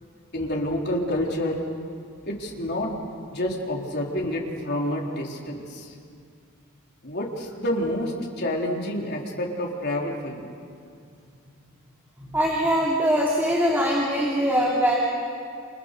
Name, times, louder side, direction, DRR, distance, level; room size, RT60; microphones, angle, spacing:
voice 1, 0.3-1.6 2.3-5.9 7.0-10.5, left 1 dB, 50° left, -1 dB, 4.0 m, -28 dB
voice 2, 12.2-15.0, equal, 10° right, -4 dB, 3.2 m, -22 dB
30.0 x 28.5 x 6.9 m, 2.4 s
head